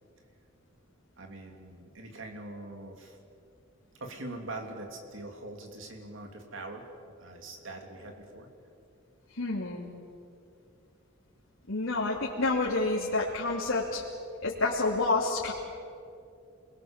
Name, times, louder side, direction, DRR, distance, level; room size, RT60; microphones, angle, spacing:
voice 1, 1.2-3.2 4.0-6.8 7.2-8.5, right 2 dB, 65° right, 3 dB, 3.3 m, -43 dB
voice 2, 9.3-9.9 11.7-14.0 14.4-15.5, left 3 dB, 85° left, -4 dB, 3.0 m, -28 dB
28.0 x 21.5 x 7.4 m, 2.5 s
head